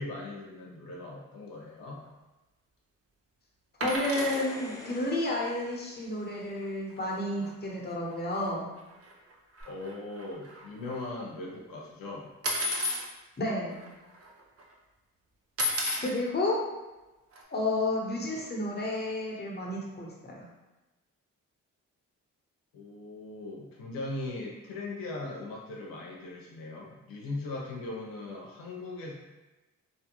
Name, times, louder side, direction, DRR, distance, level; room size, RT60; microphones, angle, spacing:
voice 1, 0.0-2.0 9.6-12.3 22.7-29.1, left 2 dB, 90° left, -3 dB, 0.6 m, -39 dB
voice 2, 3.8-8.7 13.4-13.9 16.0-16.6 17.5-20.5, left 1 dB, 30° left, -3 dB, 0.9 m, -31 dB
sound 1, 3.8-4.4 6.6-6.7 7.0-7.1 7.4-7.5 8.3-8.4 8.9-11.0 12.4-13.0 13.8-13.9 14.1-14.6 15.6-16.1 17.3-17.4, left 1 dB, 45° right, 0.6 m, -32 dB
sound 2, 4.1-6.5 9.6-9.7, left 1 dB, 10° left, 0.4 m, -45 dB
2.6 x 2.3 x 2.8 m, 1.1 s
cardioid pair, 60°, 33 cm